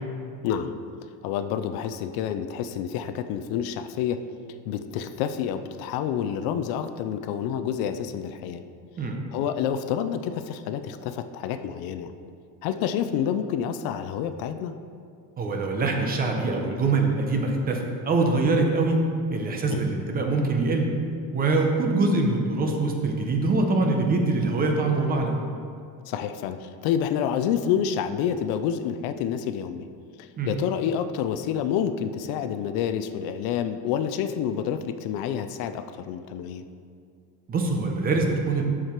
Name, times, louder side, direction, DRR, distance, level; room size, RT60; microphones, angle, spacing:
voice 1, 0.4-0.7 1.2-4.2 4.7-8.6 9.3-12.1 12.6-14.7 19.7-19.8 26.1-29.9 30.2-36.6, left 8 dB, 65° left, 10 dB, 0.5 m, -28 dB
voice 2, 15.4-19.0 19.3-20.9 21.3-25.3 30.4-30.5 37.5-38.6, right 3 dB, 20° right, 2 dB, 0.8 m, -24 dB
12.5 x 4.9 x 4.5 m, 2.3 s
cardioid pair, 180°, 40 cm